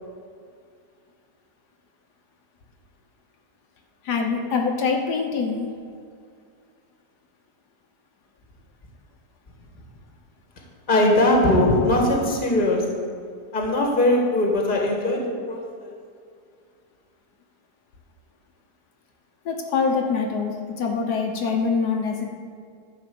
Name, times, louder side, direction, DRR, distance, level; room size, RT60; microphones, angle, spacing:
voice 1, 4.0-5.7 19.4-22.2, left 5 dB, 80° left, 1 dB, 1.6 m, -24 dB
voice 2, 10.9-12.9 13.5-15.9, left 1 dB, 30° left, 0 dB, 1.6 m, -20 dB
11.0 x 5.0 x 6.8 m, 2.2 s
omnidirectional pair, 1.7 m